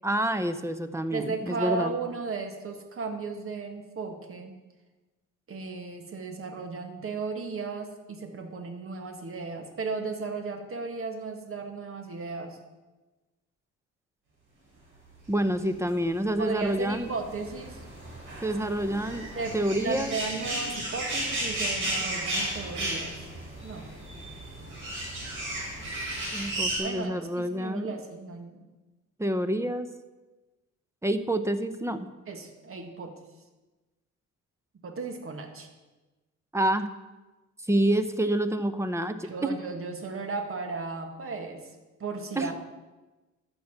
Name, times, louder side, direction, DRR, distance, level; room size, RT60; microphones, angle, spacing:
voice 1, 0.0-1.9 15.3-17.1 18.4-20.1 26.3-27.9 29.2-29.9 31.0-32.1 36.5-36.9 37.7-39.5 42.4-42.5, right 1 dB, 10° right, 11 dB, 0.8 m, -28 dB
voice 2, 1.1-4.5 5.5-12.6 16.4-17.8 19.4-23.3 23.6-23.9 26.8-28.7 32.3-33.1 34.8-35.7 39.2-42.6, right 4 dB, 45° right, 5 dB, 1.8 m, -35 dB
sound 1, 15.7-26.8, right 1 dB, 85° right, 4.7 m, -34 dB
12.0 x 7.1 x 5.9 m, 1.2 s
cardioid pair, 90°, 30 cm